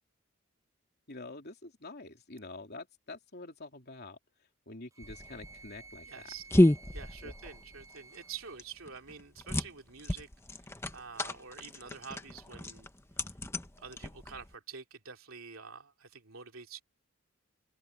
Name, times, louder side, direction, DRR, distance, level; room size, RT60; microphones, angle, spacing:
voice 1, 1.1-4.2 4.7-6.1 7.2-7.3, left 2 dB, 50° left, 3.4 m, -46 dB
Wind instrument woodwind instrument, 4.9-8.6, right 4 dB, 15° right, 7.3 m, -54 dB
sound 1, 5.0-14.5, left 1 dB, 10° left, 1.0 m, -31 dB
voice 2, 6.0-10.3 10.9-12.9 13.8-16.8, right 6 dB, 75° right, 2.9 m, -47 dB
open air
head